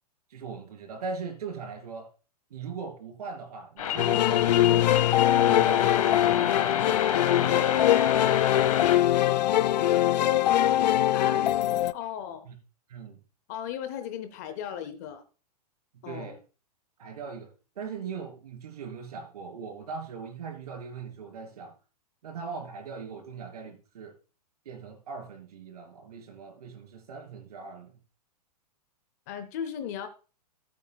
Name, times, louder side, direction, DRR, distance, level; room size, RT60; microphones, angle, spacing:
voice 1, 0.3-2.1 2.5-7.1 7.4-7.9 12.5-12.6 12.9-13.2 15.9-16.4 17.0-21.7 22.2-24.2 24.7-27.9, right 5 dB, 65° right, 3.5 m, -40 dB
sound 1, 3.8-9.0, left 8 dB, 60° left, 1.5 m, -30 dB
sound 2, 4.0-11.9, left 13 dB, 85° left, 0.5 m, -22 dB
voice 2, 11.1-11.4 11.9-12.5 13.5-15.2 16.0-16.4 29.3-30.1, left 9 dB, 25° left, 0.6 m, -36 dB
16.5 x 8.3 x 2.3 m
hypercardioid pair, 175°, 21 cm